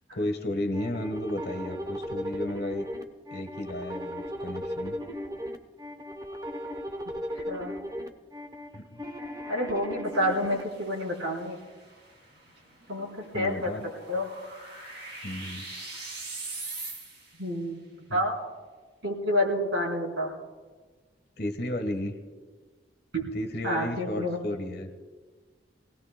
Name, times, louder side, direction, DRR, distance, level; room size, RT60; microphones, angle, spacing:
voice 1, 0.1-2.9 3.3-5.0 8.7-9.0 13.3-13.9 15.2-15.6 18.1-18.2 21.4-22.1 23.3-24.9, left 1 dB, 60° left, 6 dB, 1.4 m, -33 dB
sound 1, 0.7-10.6, equal, 20° right, 0.8 m, -37 dB
voice 2, 9.5-11.6 12.9-13.1 13.3-13.7 14.1-14.3 17.4-17.8 18.1-18.3 19.0-20.4 23.1-23.2 23.6-24.4, left 1 dB, 90° right, -2 dB, 3.7 m, -28 dB
sound 2, 10.0-17.5, right 3 dB, 60° right, 3.0 m, -43 dB
23.5 x 18.0 x 2.2 m, 1.4 s
head